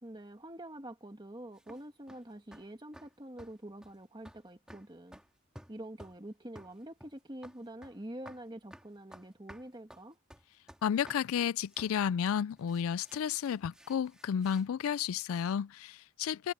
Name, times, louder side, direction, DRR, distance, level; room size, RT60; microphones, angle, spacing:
voice 1, 0.0-5.2 5.7-10.2, right 1 dB, 20° right, 1.6 m, -46 dB
sound 1, 1.6-2.2 2.5-2.7 2.9-3.1 3.4-3.6 3.8-4.0 4.3-4.4 4.7-5.3 5.6-6.2 6.6-8.0 8.3-8.5 8.7-11.2 11.7-12.0 12.6-14.7, equal, 5° right, 2.4 m, -54 dB
voice 2, 10.8-16.5, left 8 dB, 75° left, 0.3 m, -32 dB
head